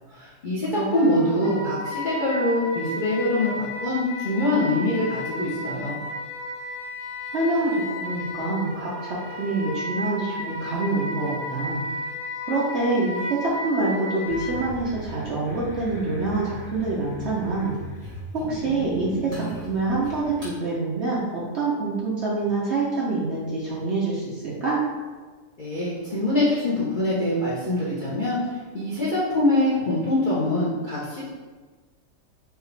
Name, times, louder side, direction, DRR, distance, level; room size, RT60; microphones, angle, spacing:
voice 1, 0.1-6.0 25.6-28.4 28.7-31.2, left 1 dB, 45° left, -9 dB, 0.6 m, -24 dB
voice 2, 0.8-1.7 7.3-11.8 12.5-17.8 18.3-24.8, right 3 dB, 60° right, -6 dB, 0.7 m, -26 dB
Wind instrument woodwind instrument, 0.9-14.7, left 1 dB, 65° left, 1.1 m, -33 dB
sound 1, 14.3-20.6, right 1 dB, 20° right, 1.5 m, -38 dB
4.6 x 2.4 x 3.2 m, 1.4 s
omnidirectional pair, 1.8 m